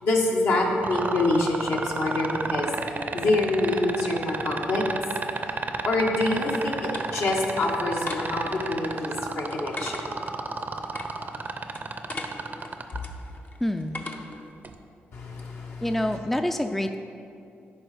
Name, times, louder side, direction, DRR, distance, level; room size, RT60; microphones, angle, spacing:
voice 1, 0.0-2.7 3.1-4.8 5.8-10.1 15.1-16.2, left 2 dB, 70° left, -1 dB, 1.3 m, -26 dB
sound 1, 0.8-13.0 14.6-14.7, right 4 dB, 45° right, 0.6 m, -30 dB
sound 2, 5.7-14.5, left 3 dB, 45° left, 0.7 m, -41 dB
voice 2, 13.6-14.0 15.8-17.0, left 1 dB, 5° left, 7 dB, 0.4 m, -26 dB
10.5 x 4.4 x 4.9 m, 2.5 s
cardioid pair, 65°, 4 cm